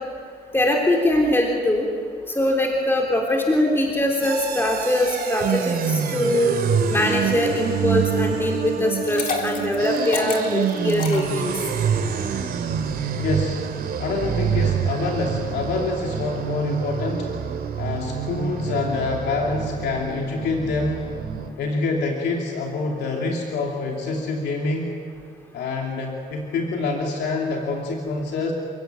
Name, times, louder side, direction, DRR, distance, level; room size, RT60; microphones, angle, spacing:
voice 1, 0.5-1.9 2.3-6.6 6.9-11.5, left 1 dB, 15° left, 0 dB, 3.6 m, -22 dB
sound 1, 4.2-21.5, right 7 dB, 70° right, 2.7 m, -26 dB
Liquid, 8.9-11.9, left 4 dB, 55° left, 3.8 m, -31 dB
voice 2, 13.2-13.7 14.0-17.3 17.8-21.1 21.6-25.0 25.5-28.5, left 3 dB, 85° left, 0 dB, 2.9 m, -26 dB
29.5 x 16.5 x 9.2 m, 2.4 s
cardioid pair, 105°, 17 cm